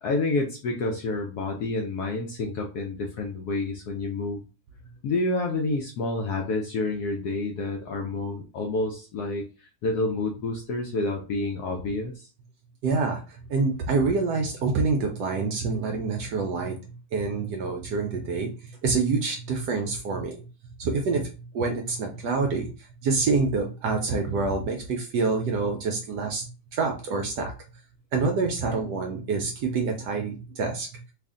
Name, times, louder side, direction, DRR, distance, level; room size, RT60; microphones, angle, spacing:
voice 1, 0.0-4.4 5.0-12.3, left 2 dB, 70° left, 1 dB, 0.9 m, -29 dB
voice 2, 12.8-16.7 17.1-18.5 18.8-20.4 20.8-21.3 21.5-22.7 23.0-27.5 28.1-30.9, right 4 dB, 70° right, 3 dB, 1.0 m, -26 dB
3.4 x 2.5 x 3.6 m, 0.34 s
omnidirectional pair, 2.2 m